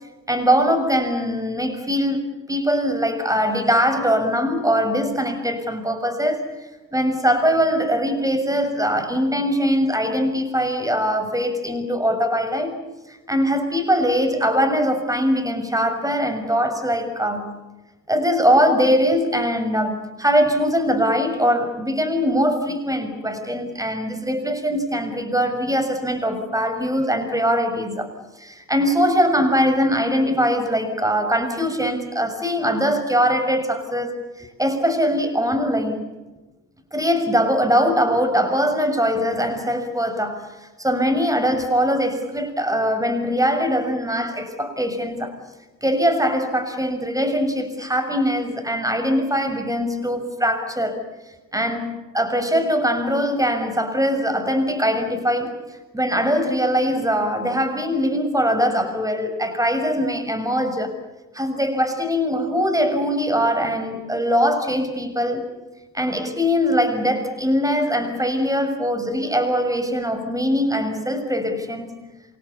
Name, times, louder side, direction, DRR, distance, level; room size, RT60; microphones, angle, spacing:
voice 1, 0.3-6.5 6.9-12.8 13.1-17.6 18.1-28.1 28.4-36.0 36.9-45.4 45.8-51.0 51.5-55.6 55.9-61.0 61.3-65.5 65.9-72.0, equal, 10° right, 8 dB, 6.6 m, -22 dB
28.5 x 25.0 x 7.1 m, 1.1 s
figure-of-eight pair, 45°, 41 cm